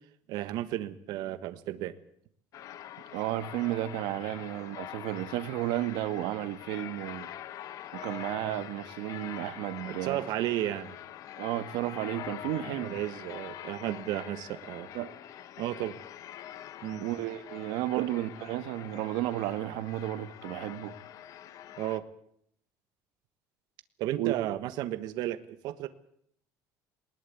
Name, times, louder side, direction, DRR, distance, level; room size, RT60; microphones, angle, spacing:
voice 1, 0.3-1.9 9.8-11.0 12.8-14.9 15.6-15.9 16.8-17.0 18.0-18.1 21.8-22.0 24.0-25.9, right 14 dB, 60° right, 1.3 m, -33 dB
sound 1, 2.5-22.0, left 11 dB, 45° left, 1.1 m, -44 dB
voice 2, 3.1-7.3 7.9-10.2 11.4-12.9 14.9-15.1 17.0-20.9 24.2-24.5, right 14 dB, 85° right, 1.5 m, -33 dB
20.0 x 19.5 x 8.4 m
cardioid pair, 165°, 8 cm